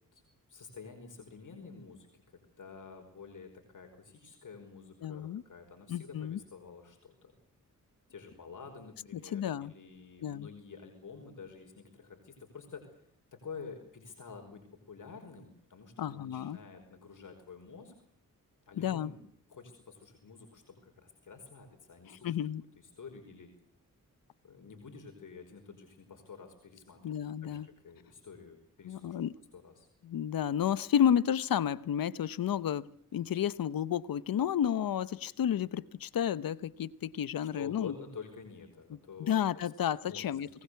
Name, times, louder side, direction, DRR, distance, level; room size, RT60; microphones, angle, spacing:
voice 1, 0.5-7.3 8.1-13.0 13.3-17.9 18.7-19.2 19.5-22.4 22.8-23.5 24.4-29.2 29.5-29.9 37.6-39.4 40.0-40.4, left 5 dB, 65° left, 5.2 m, -49 dB
voice 2, 5.0-5.4 5.9-6.4 9.1-9.7 10.2-10.5 16.0-16.6 18.8-19.1 22.1-22.6 27.0-27.7 28.8-29.3 30.0-37.9 39.2-40.5, left 9 dB, 85° left, 0.9 m, -31 dB
23.5 x 19.5 x 8.3 m
cardioid pair, 80°, 34 cm